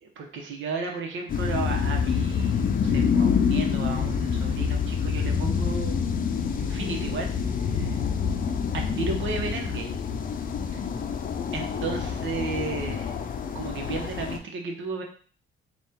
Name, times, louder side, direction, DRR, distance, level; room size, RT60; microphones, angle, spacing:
voice 1, 0.0-6.0 6.6-7.3 7.7-8.0 8.7-10.0 10.7-10.8 11.5-13.2 13.5-15.0, right 4 dB, 75° right, 3 dB, 1.0 m, -34 dB
sound 1, 1.3-14.4, left 6 dB, 45° left, 0.5 m, -27 dB
Bass guitar, 5.3-11.5, right 4 dB, 35° right, 1.2 m, -45 dB
4.1 x 2.4 x 3.6 m, 0.42 s
cardioid pair, 90°, 20 cm